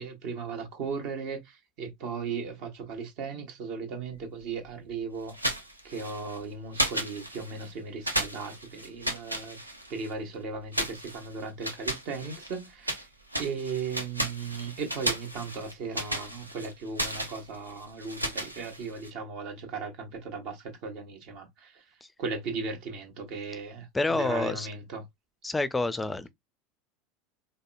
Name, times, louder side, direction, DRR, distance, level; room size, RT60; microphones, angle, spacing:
voice 1, 0.0-5.3 5.8-9.6 9.9-13.0 13.4-21.8 22.2-25.0, right 4 dB, 50° right, 1.2 m, -37 dB
sound 1, 5.3-6.4 6.7-7.7 8.0-10.1 10.7-13.1 13.3-19.1, right 1 dB, 85° right, 0.7 m, -34 dB
voice 2, 23.9-24.7 25.4-26.3, left 2 dB, 10° left, 0.5 m, -28 dB
4.9 x 2.1 x 2.3 m
figure-of-eight pair, 75°, 0 cm